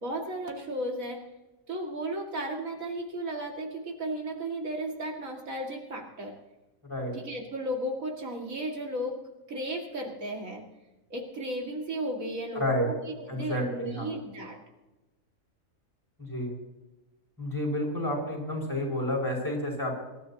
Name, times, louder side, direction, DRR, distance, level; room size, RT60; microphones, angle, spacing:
voice 1, 0.0-1.2 1.7-6.3 7.1-9.2 9.5-10.6 11.1-14.6, right 1 dB, 75° right, 0 dB, 2.6 m, -34 dB
voice 2, 12.6-12.9 13.3-14.1 16.2-16.5 17.4-19.9, left 1 dB, 15° left, -3 dB, 5.5 m, -30 dB
25.0 x 12.5 x 2.9 m, 1.1 s
omnidirectional pair, 1.4 m